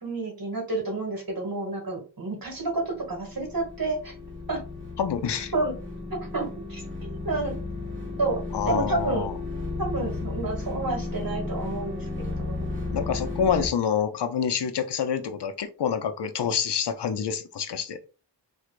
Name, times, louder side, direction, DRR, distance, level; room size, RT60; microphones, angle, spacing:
voice 1, 0.0-4.1 4.5-4.6 5.5-5.7 6.1-7.6 8.2-9.3 9.8-12.7, right 2 dB, 55° right, 1.5 m, -30 dB
sound 1, 2.5-13.7, left 2 dB, 30° right, 1.6 m, -34 dB
voice 2, 5.0-5.5 8.5-9.4 12.9-18.0, left 7 dB, 75° left, 0.6 m, -27 dB
4.6 x 2.3 x 2.4 m
wide cardioid pair, 75°, 41 cm